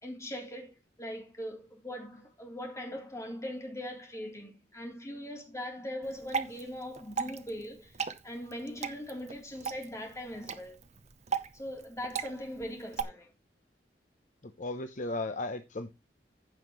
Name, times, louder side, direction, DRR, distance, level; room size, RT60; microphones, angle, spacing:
voice 1, 0.0-8.0 8.2-10.8 11.5-13.3, equal, 15° left, 3.4 m, -40 dB
Water / Drip, 6.0-13.0, right 6 dB, 40° right, 0.9 m, -38 dB
voice 2, 14.4-15.9, left 2 dB, 45° left, 0.8 m, -35 dB
15.5 x 5.7 x 3.1 m
head